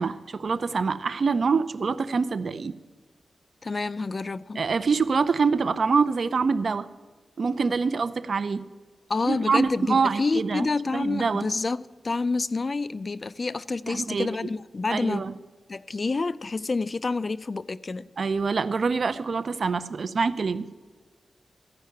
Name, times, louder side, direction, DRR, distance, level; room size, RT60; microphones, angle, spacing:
voice 1, 0.0-2.7 4.6-6.9 7.4-8.6 9.2-11.5 13.9-14.3 14.9-15.3 18.2-20.7, right 5 dB, 65° right, 0.5 m, -25 dB
voice 2, 3.6-4.6 9.1-15.3 15.7-18.1, left 3 dB, 40° left, 0.3 m, -28 dB
14.5 x 5.6 x 9.5 m
wide cardioid pair, 85°, 0 cm